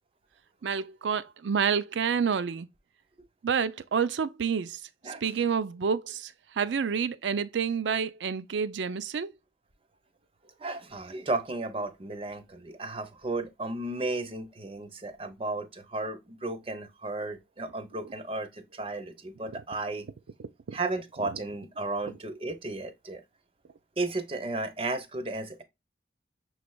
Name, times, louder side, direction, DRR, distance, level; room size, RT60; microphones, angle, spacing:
voice 1, 0.6-2.7 3.4-9.3 18.0-18.1 19.4-19.6 20.4-20.8 21.3-21.4, right 6 dB, 85° right, 0.4 m, -29 dB
voice 2, 10.6-20.0 20.7-23.2 24.0-25.6, right 2 dB, 30° right, 0.6 m, -34 dB
5.9 x 3.2 x 2.3 m
head